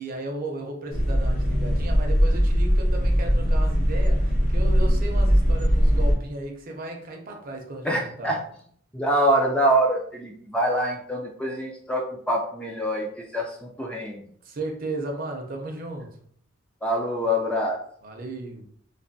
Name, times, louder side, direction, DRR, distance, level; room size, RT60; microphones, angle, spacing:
voice 1, 0.0-8.3 14.4-16.2 18.0-18.6, right 2 dB, 45° right, 2 dB, 0.6 m, -35 dB
sound 1, 0.9-6.1, equal, 40° left, 0.6 m, -20 dB
voice 2, 7.8-8.4 8.9-14.2 16.8-17.8, right 1 dB, 5° left, -1 dB, 0.3 m, -25 dB
3.2 x 2.2 x 2.6 m, 0.62 s
head